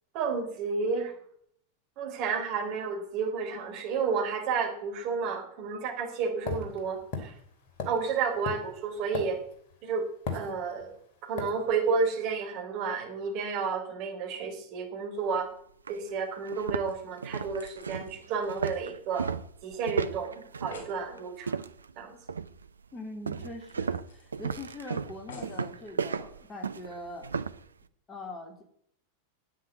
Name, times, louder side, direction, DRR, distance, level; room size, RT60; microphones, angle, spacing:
voice 1, 0.1-1.2 2.0-7.3 7.9-9.4 9.8-10.1 10.3-11.0 11.2-15.5 15.9-19.3 19.6-21.6 22.0-22.2, right 5 dB, 40° right, 2 dB, 3.8 m, -31 dB
sound 1, 6.5-9.7 10.3-10.9 11.4-11.6, left 4 dB, 45° left, 3.0 m, -36 dB
sound 2, 15.3-15.4 15.9-16.0 16.4-21.9 22.3-22.7 23.3-27.6, right 5 dB, 75° right, 0.6 m, -34 dB
sound 3, 16.9-19.5 19.8-19.9 20.2-20.3 20.5-21.0 22.5-22.6 22.9-23.0 23.7-24.7 25.3-25.7 26.4-26.5, left 4 dB, 60° left, 5.5 m, -51 dB
voice 2, 22.9-27.3 28.1-28.6, left 2 dB, 20° left, 3 dB, 2.9 m, -42 dB
9.7 x 9.1 x 9.2 m, 0.67 s
figure-of-eight pair, 90°, 0 cm